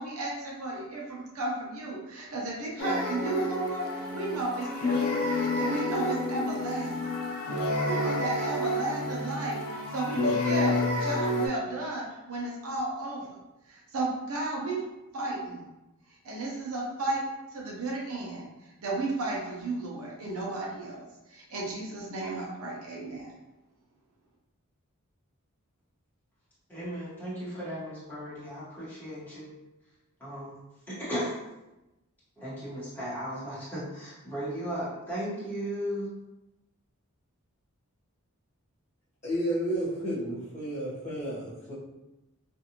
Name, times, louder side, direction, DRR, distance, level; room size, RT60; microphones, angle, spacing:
voice 1, 0.0-6.9 7.8-13.4 13.7-14.8 15.1-15.7 16.1-17.3 17.5-18.5 18.8-23.3, right 2 dB, 75° right, -3 dB, 0.7 m, -34 dB
sound 1, 2.8-11.5, left 2 dB, 90° left, 0.6 m, -29 dB
voice 2, 26.7-29.5 30.2-30.6 30.9-31.3 32.4-36.1, equal, 10° left, -11 dB, 1.2 m, -36 dB
voice 3, 39.2-41.7, right 1 dB, 30° left, -8 dB, 1.0 m, -31 dB
2.6 x 2.4 x 2.9 m, 0.97 s
head